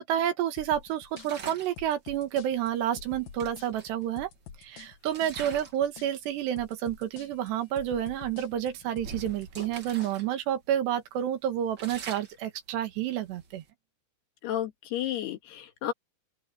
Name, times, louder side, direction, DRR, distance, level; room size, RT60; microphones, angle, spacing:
voice 1, 0.0-4.3 4.6-13.6, right 10 dB, 80° right, 3.9 m, -30 dB
sound 1, 0.6-10.2, left 7 dB, 60° left, 3.2 m, -48 dB
sound 2, 1.1-1.8 2.9-3.0 3.4-4.6 5.1-5.8 6.2-6.5 7.1-7.2 7.6-7.8 8.4-10.3 10.6-10.7 11.2-13.7, right 5 dB, 45° right, 1.6 m, -45 dB
voice 2, 14.4-15.9, left 12 dB, 75° left, 3.8 m, -32 dB
open air
omnidirectional pair, 4.8 m